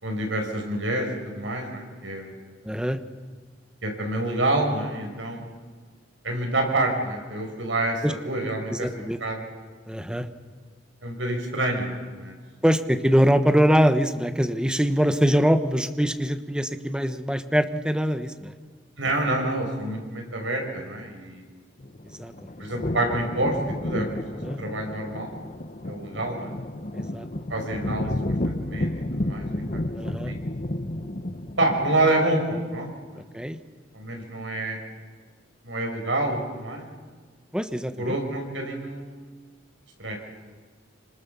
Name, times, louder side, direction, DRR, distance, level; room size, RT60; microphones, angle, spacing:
voice 1, 0.0-2.4 3.8-5.6 6.2-9.4 11.0-12.4 19.0-21.4 22.6-23.6 23.8-24.1 24.6-25.3 25.9-26.5 27.5-28.1 28.4-29.5 29.7-29.8 30.3-30.4 31.6-33.2 33.9-34.8 35.6-36.8 38.0-39.1 40.0-40.2, right 2 dB, 85° right, 2 dB, 5.8 m, -27 dB
voice 2, 2.6-3.0 8.0-8.1 8.7-9.2 9.9-10.3 12.6-18.5 22.2-22.3 24.4-24.6 26.9-27.3 29.9-30.3 33.3-33.6 37.5-38.2, equal, 5° right, 9 dB, 1.2 m, -23 dB
sound 1, 21.8-32.2, left 1 dB, 40° left, 1.1 m, -31 dB
27.0 x 26.0 x 7.1 m, 1.5 s
head